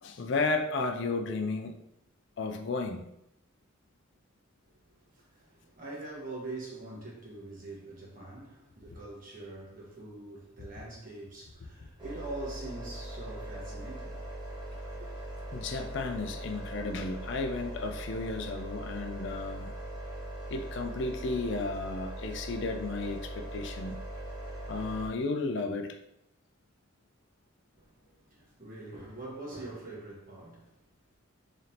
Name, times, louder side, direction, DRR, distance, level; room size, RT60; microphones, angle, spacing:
voice 1, 0.0-1.8 2.4-3.0 15.5-19.7 20.5-24.0 24.7-26.0, left 3 dB, 60° left, 0.4 m, -33 dB
voice 2, 4.7-14.5 15.0-15.1 27.7-30.7, right 2 dB, 40° right, 1.2 m, -44 dB
sound 1, 12.0-25.1, right 1 dB, 20° right, 1.0 m, -40 dB
3.7 x 3.3 x 2.9 m
head